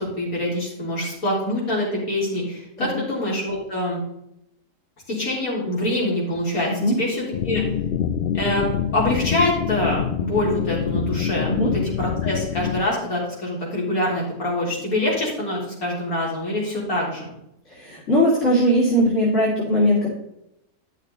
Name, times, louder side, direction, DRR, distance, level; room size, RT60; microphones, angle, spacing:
voice 1, 0.0-4.0 5.1-7.6 8.3-8.7 8.9-17.3, left 1 dB, 65° left, -4 dB, 3.9 m, -25 dB
sound 1, 7.3-12.8, left 9 dB, 80° left, 0.5 m, -26 dB
voice 2, 17.7-20.1, equal, 50° left, -7 dB, 2.8 m, -20 dB
11.0 x 6.5 x 3.8 m, 0.81 s
omnidirectional pair, 1.6 m